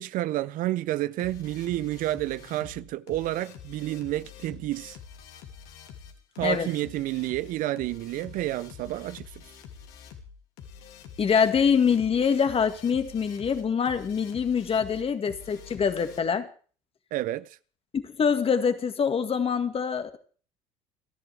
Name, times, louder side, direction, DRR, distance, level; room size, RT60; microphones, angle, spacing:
voice 1, 0.0-5.0 6.4-9.4 17.1-17.6, right 15 dB, 60° right, 0.6 m, -30 dB
sound 1, 1.2-16.2, left 7 dB, 75° left, 2.8 m, -47 dB
voice 2, 11.2-16.5 17.9-20.2, left 6 dB, 35° left, 2.0 m, -25 dB
29.5 x 11.0 x 3.5 m
hypercardioid pair, 70°, 16 cm